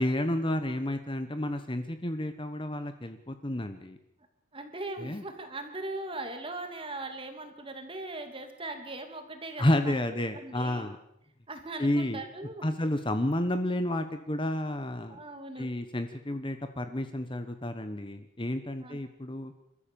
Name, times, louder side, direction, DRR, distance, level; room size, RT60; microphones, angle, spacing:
voice 1, 0.0-4.0 5.0-5.2 9.6-11.0 11.8-12.2 12.6-15.2 15.6-19.5, left 1 dB, 25° left, 9 dB, 1.1 m, -30 dB
voice 2, 4.5-10.9 11.5-12.6 15.1-15.7 18.8-19.0, right 2 dB, 25° right, 6 dB, 2.8 m, -40 dB
29.5 x 14.0 x 7.0 m, 0.76 s
head